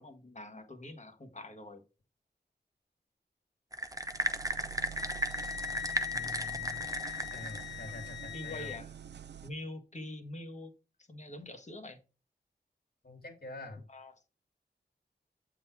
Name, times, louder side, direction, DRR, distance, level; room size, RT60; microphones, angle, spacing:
voice 1, 0.0-1.8 6.1-6.9 8.3-8.9 9.4-10.7 11.1-12.0 13.9-14.1, left 1 dB, 40° left, 7 dB, 1.4 m, -45 dB
sound 1, 3.7-7.8, right 2 dB, 20° right, 0.8 m, -35 dB
sound 2, 3.9-9.5, right 9 dB, 70° right, 0.5 m, -48 dB
Wind instrument woodwind instrument, 4.9-8.8, left 11 dB, 80° left, 0.8 m, -41 dB
voice 2, 7.3-8.8 13.0-13.9, left 2 dB, 60° left, 4 dB, 2.3 m, -45 dB
7.4 x 3.9 x 4.6 m, 0.32 s
cardioid pair, 50°, 18 cm